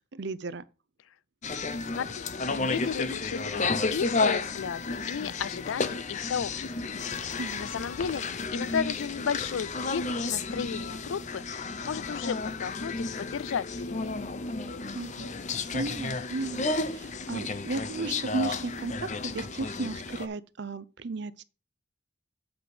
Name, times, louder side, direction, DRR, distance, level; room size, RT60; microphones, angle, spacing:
voice 1, 0.1-0.6 7.4-7.6 14.9-15.3 15.7-21.4, right 3 dB, 60° right, 0.6 m, -35 dB
sound 1, 1.4-20.3, left 3 dB, 35° left, 0.7 m, -32 dB
voice 2, 1.9-2.3 2.6-3.6 3.9-6.7 7.6-11.4 11.8-14.2, left 7 dB, 80° left, 0.4 m, -34 dB
8.1 x 5.1 x 6.0 m
head